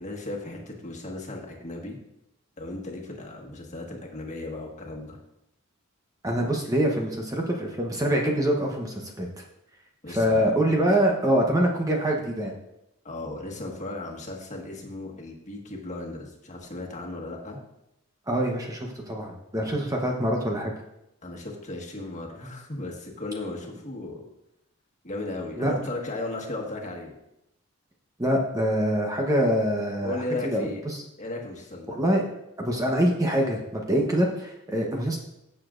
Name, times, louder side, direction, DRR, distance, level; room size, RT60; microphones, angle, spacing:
voice 1, 0.0-2.0 2.6-5.2 10.0-10.4 13.0-17.6 21.2-24.2 25.0-27.1 30.0-30.8 31.2-32.0, left 2 dB, 35° left, -1 dB, 1.6 m, -36 dB
voice 2, 6.2-9.3 10.1-12.5 18.3-20.7 25.6-25.7 28.2-30.2 30.4-31.0 31.9-32.2 32.6-35.2, equal, 15° right, 0 dB, 0.9 m, -25 dB
16.0 x 6.9 x 2.5 m, 0.85 s
head